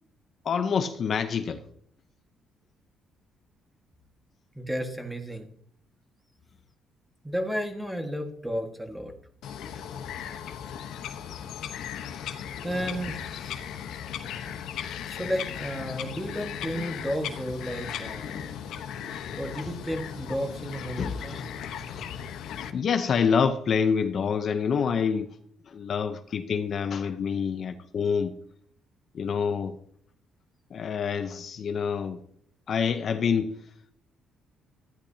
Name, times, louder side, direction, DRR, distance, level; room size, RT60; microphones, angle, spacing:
voice 1, 0.4-1.6 21.0-21.4 21.9-22.2 22.7-25.3 25.7-28.3 29.1-29.8 30.7-32.2 32.7-33.5, left 6 dB, 45° left, 0.7 m, -27 dB
voice 2, 4.5-5.5 7.2-9.1 11.9-12.3 12.6-14.0 14.5-14.6 15.1-18.5 19.4-21.5, equal, 5° right, 1.6 m, -33 dB
Bird vocalization bird call bird song, 9.4-22.7, left 9 dB, 80° left, 1.0 m, -37 dB
14.5 x 10.0 x 2.8 m
cardioid pair, 145°, 0 cm